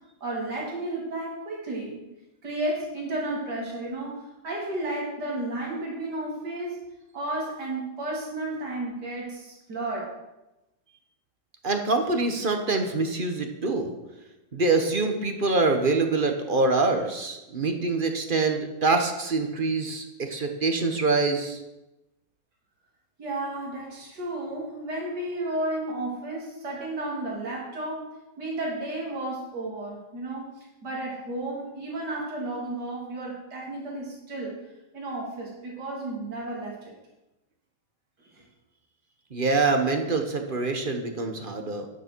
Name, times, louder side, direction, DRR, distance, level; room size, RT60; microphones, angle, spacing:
voice 1, 0.2-2.0 2.4-6.8 7.1-10.1 23.2-28.1 28.4-34.6 34.9-36.9 38.3-38.4, right 2 dB, 55° right, -4 dB, 3.7 m, -33 dB
voice 2, 11.6-13.9 14.5-21.6 39.3-41.9, right 3 dB, 30° right, 5 dB, 1.1 m, -25 dB
12.5 x 9.9 x 4.6 m, 0.98 s
omnidirectional pair, 2.1 m